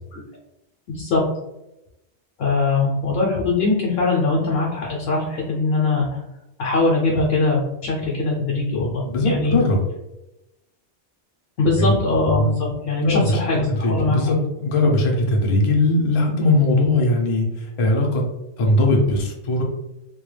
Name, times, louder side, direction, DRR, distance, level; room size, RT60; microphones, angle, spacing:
voice 1, 0.9-1.2 2.4-6.2 6.6-9.6 11.6-14.3, left 3 dB, 65° left, -4 dB, 0.7 m, -21 dB
voice 2, 9.0-9.8 11.8-12.0 13.1-13.4 13.7-14.4 14.6-18.2 18.6-19.6, left 2 dB, 45° left, 0 dB, 0.4 m, -19 dB
2.2 x 2.1 x 3.1 m, 0.92 s
omnidirectional pair, 1.1 m